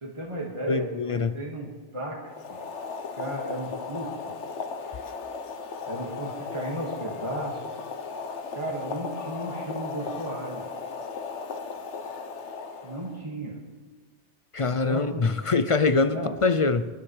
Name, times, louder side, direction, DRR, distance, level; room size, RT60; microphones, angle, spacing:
voice 1, 0.0-2.6 3.1-4.4 5.9-7.8 8.6-10.7 12.8-13.6 14.7-15.3 16.1-16.4, right 1 dB, 25° right, -2 dB, 2.0 m, -35 dB
voice 2, 0.7-1.4 14.5-16.9, left 4 dB, 45° left, 11 dB, 0.4 m, -24 dB
Boiling, 2.2-13.2, left 5 dB, 80° left, 1.3 m, -36 dB
24.5 x 13.0 x 3.3 m, 1.4 s
omnidirectional pair, 1.2 m